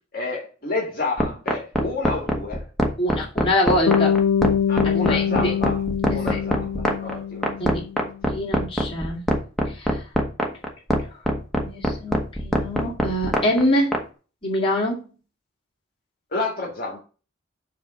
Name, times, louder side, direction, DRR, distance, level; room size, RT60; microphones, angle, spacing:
voice 1, 0.1-2.7 4.7-5.8 6.1-7.6 8.0-8.1 16.3-17.0, left 3 dB, 45° left, 1.9 m, -30 dB
sound 1, 1.2-14.0, equal, ahead, 1.0 m, -22 dB
voice 2, 3.0-4.2 4.8-5.5 6.1-6.3 7.6-7.8 8.3-9.2 9.7-10.0 11.6-14.0 14.4-15.0, left 1 dB, 25° left, 2.1 m, -24 dB
Bass guitar, 3.9-8.1, left 8 dB, 90° left, 0.3 m, -23 dB
7.2 x 3.3 x 6.1 m
head